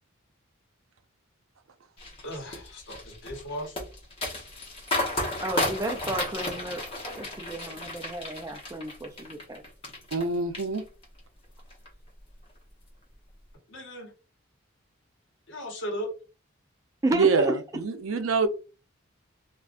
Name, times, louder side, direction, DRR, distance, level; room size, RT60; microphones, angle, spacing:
sound 1, 2.0-10.2 10.5-11.2 11.6-11.9, left 1 dB, 25° left, 1.0 m, -33 dB
voice 1, 2.2-3.8 13.7-14.1 15.5-16.1, equal, 65° left, 1.1 m, -36 dB
voice 2, 5.4-6.8 7.2-9.6 17.0-17.6, right 1 dB, 15° right, 0.4 m, -31 dB
voice 3, 10.1-10.8 17.1-18.5, right 3 dB, 85° right, 0.5 m, -25 dB
3.5 x 2.4 x 2.5 m
head